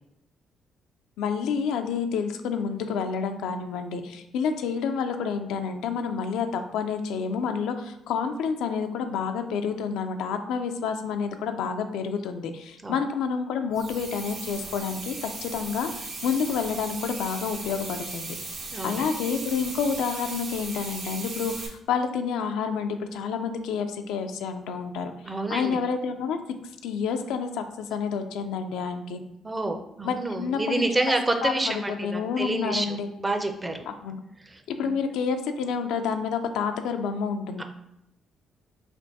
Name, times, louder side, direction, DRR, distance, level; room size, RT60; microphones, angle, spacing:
voice 1, 1.2-18.3 18.8-25.1 25.5-26.4 26.8-29.2 30.0-30.9 31.4-33.1 33.9-34.2 34.7-37.6, left 6 dB, 90° left, 7 dB, 0.3 m, -29 dB
sound 1, 13.7-21.7, right 3 dB, 70° right, 0.8 m, -37 dB
voice 2, 18.7-19.1 25.2-25.8 29.4-33.8 34.5-34.9 37.6-37.7, right 2 dB, 20° right, 5 dB, 0.5 m, -29 dB
3.4 x 2.5 x 4.0 m, 0.83 s
cardioid pair, 90°, 0 cm